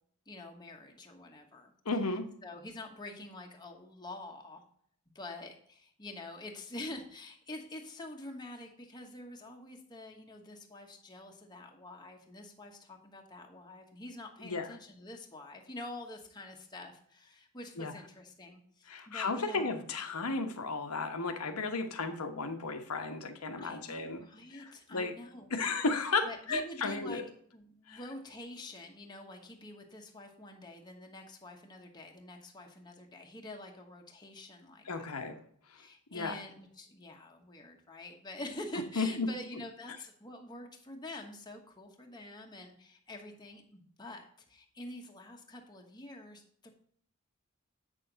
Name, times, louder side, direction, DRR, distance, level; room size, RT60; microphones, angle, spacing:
voice 1, 0.3-1.7 2.4-4.6 5.1-19.7 23.6-25.5 26.2-27.2 27.5-35.2 35.7-46.7, left 1 dB, 20° left, 2 dB, 1.1 m, -47 dB
voice 2, 1.8-2.3 14.4-14.7 17.8-17.9 18.9-24.2 24.5-25.1 25.5-27.2 27.9-28.0 34.8-35.4 35.7-35.8 36.1-36.4 39.0-39.3, left 3 dB, 85° left, 7 dB, 1.1 m, -34 dB
8.2 x 6.4 x 3.9 m, 0.63 s
head